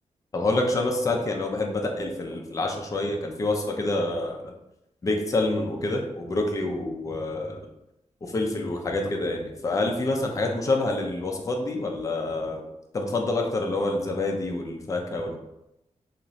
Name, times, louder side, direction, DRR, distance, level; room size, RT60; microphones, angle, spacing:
voice 1, 0.3-4.5 5.0-7.6 8.2-12.6 12.9-15.4, left 2 dB, 25° left, 2 dB, 0.4 m, -27 dB
2.5 x 2.4 x 3.0 m, 0.87 s
wide cardioid pair, 150°, 12 cm